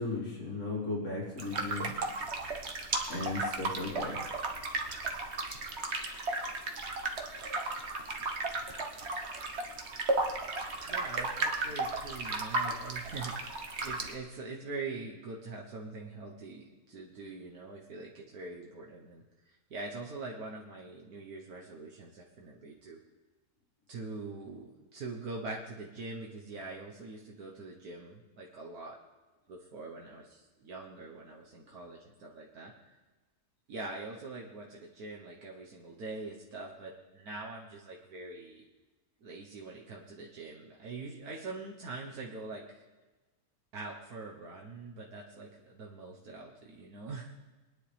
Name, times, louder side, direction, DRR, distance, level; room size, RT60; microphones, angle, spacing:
voice 1, 0.0-1.9 3.1-4.2, left 2 dB, 85° left, -4 dB, 3.8 m, -36 dB
sound 1, 1.4-14.1, right 2 dB, 45° right, 1.4 m, -35 dB
voice 2, 10.7-23.0 23.9-29.0 29.5-33.0 33.7-38.7 39.2-42.8 43.7-47.3, right 3 dB, 75° right, -2 dB, 1.6 m, -43 dB
22.5 x 10.0 x 3.4 m, 1.2 s
omnidirectional pair, 1.6 m